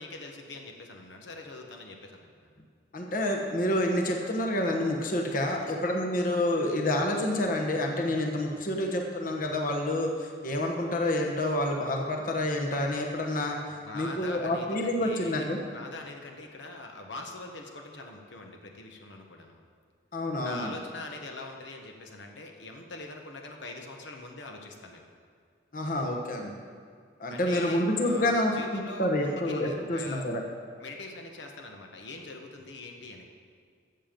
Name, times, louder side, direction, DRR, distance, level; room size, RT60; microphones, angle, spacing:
voice 1, 0.0-2.5 5.4-5.7 8.6-8.7 13.7-19.6 20.4-25.1 27.3-30.3 30.8-33.2, left 2 dB, 75° left, 2 dB, 1.2 m, -43 dB
voice 2, 2.9-13.6 13.9-15.6 20.1-20.7 25.7-26.6 27.2-30.4, left 1 dB, 45° left, 1 dB, 1.1 m, -28 dB
14.5 x 7.6 x 5.2 m, 2.1 s
head